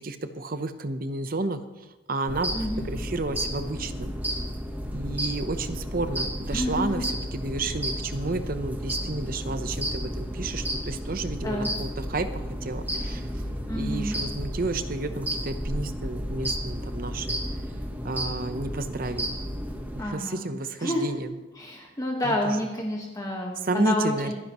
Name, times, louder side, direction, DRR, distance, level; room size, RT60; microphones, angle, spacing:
voice 1, 0.0-1.6 2.1-4.1 4.9-13.3 13.8-17.4 18.0-19.4 19.9-21.3 22.2-22.6 23.6-24.3, right 2 dB, 50° right, 10 dB, 0.8 m, -31 dB
sound 1, 2.3-20.0, equal, 10° right, 1.2 m, -32 dB
voice 2, 2.5-2.9 6.5-7.1 11.4-11.7 13.7-14.1 20.0-20.5 20.8-21.1 21.5-24.3, left 1 dB, 20° left, -1 dB, 1.5 m, -29 dB
26.0 x 10.0 x 3.1 m, 1.1 s
head